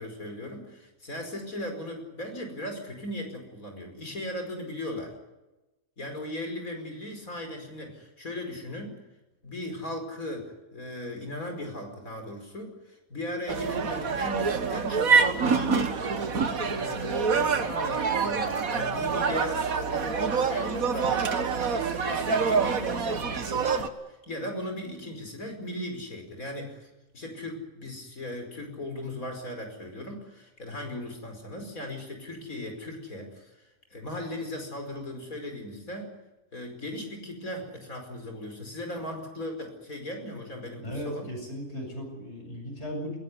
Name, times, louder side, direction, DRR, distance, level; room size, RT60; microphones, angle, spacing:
voice 1, 0.0-5.1 6.0-9.0 9.4-16.0 16.6-23.8 24.1-36.1 36.5-41.3, left 1 dB, 80° left, 4 dB, 5.7 m, -37 dB
sound 1, 13.5-23.9, right 5 dB, 85° right, 2.0 m, -26 dB
voice 2, 40.8-43.2, equal, 50° left, 1 dB, 8.5 m, -36 dB
21.0 x 18.0 x 9.7 m, 1.1 s
omnidirectional pair, 1.5 m